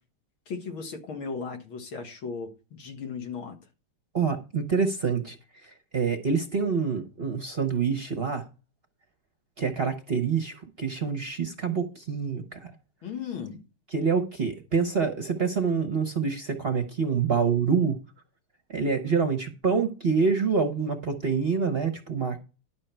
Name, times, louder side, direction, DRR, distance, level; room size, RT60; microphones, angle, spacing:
voice 1, 0.5-3.6 13.0-13.6, left 5 dB, 70° left, 2.5 m, -36 dB
voice 2, 4.1-5.4 5.6-8.4 9.6-12.7 13.9-18.0 18.7-22.4, right 5 dB, 40° right, 0.9 m, -26 dB
12.0 x 6.2 x 4.4 m
omnidirectional pair, 2.3 m